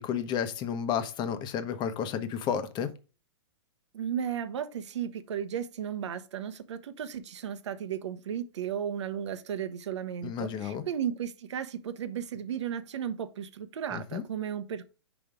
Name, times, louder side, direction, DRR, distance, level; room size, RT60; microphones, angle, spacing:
voice 1, 0.0-2.9 10.2-10.8 13.9-14.2, left 8 dB, 30° left, 1.0 m, -32 dB
voice 2, 3.9-14.8, right 9 dB, 70° right, 1.0 m, -35 dB
5.4 x 5.0 x 4.9 m
hypercardioid pair, 125°, 15 cm